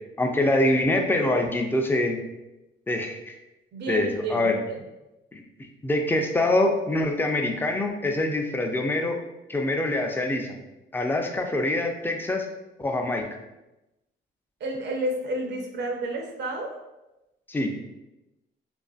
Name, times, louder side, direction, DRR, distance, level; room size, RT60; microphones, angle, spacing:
voice 1, 0.2-2.2 2.9-3.3 3.9-4.6 5.3-5.4 5.8-9.2 9.5-10.6 10.9-12.5 12.8-13.2 17.5-17.8, left 1 dB, 10° left, 3 dB, 0.3 m, -24 dB
voice 2, 3.7-4.8 14.6-16.8, right 1 dB, 60° right, 2 dB, 0.5 m, -31 dB
2.4 x 2.4 x 2.3 m, 0.97 s
cardioid pair, 90°, 20 cm